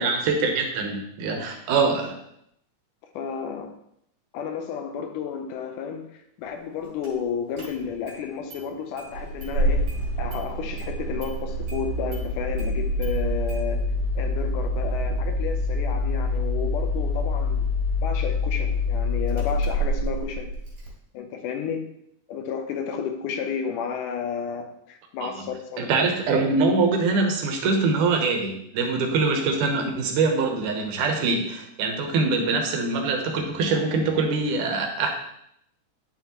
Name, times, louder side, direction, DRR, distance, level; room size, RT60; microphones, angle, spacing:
voice 1, 0.0-2.1 25.2-25.3 25.8-35.1, right 4 dB, 85° right, 3 dB, 2.5 m, -24 dB
voice 2, 3.2-3.7 4.3-9.9 10.2-13.8 14.2-17.7 18.0-20.5 21.1-21.9 22.3-26.1, left 7 dB, 85° left, 6 dB, 2.3 m, -32 dB
Engine starting, 7.0-7.1 7.6-8.2 8.5-8.6 9.0-20.9, left 1 dB, 60° right, 3.3 m, -26 dB
9.2 x 5.8 x 3.0 m, 0.74 s
omnidirectional pair, 3.6 m